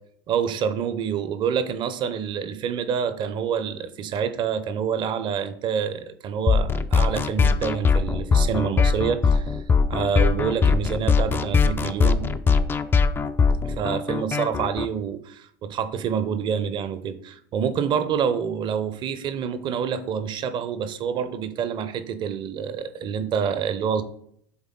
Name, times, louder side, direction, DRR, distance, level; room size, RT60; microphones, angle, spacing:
voice 1, 0.3-9.6 9.9-12.3 13.6-24.0, right 7 dB, 40° right, 12 dB, 0.7 m, -27 dB
sound 1, 6.5-14.9, left 5 dB, 20° left, 0.4 m, -21 dB
7.2 x 3.6 x 3.8 m, 0.66 s
hypercardioid pair, 85°, 12 cm